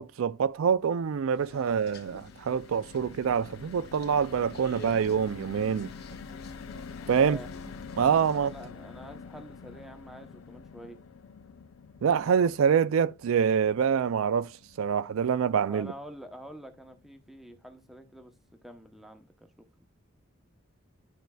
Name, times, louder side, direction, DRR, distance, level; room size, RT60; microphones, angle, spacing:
voice 1, 0.0-5.9 7.1-7.4 8.0-8.5 12.0-14.5 14.8-15.9, right 7 dB, 80° right, 0.4 m, -26 dB
sound 1, 0.9-17.2 17.6-17.7 18.0-18.2, left 5 dB, 75° left, 0.5 m, -47 dB
sound 2, 1.3-8.7, left 2 dB, 50° left, 1.1 m, -52 dB
voice 2, 7.0-7.5 8.2-11.0 15.6-18.3 18.6-19.5 19.8-19.9, equal, ahead, 0.7 m, -46 dB
11.5 x 4.5 x 2.3 m
head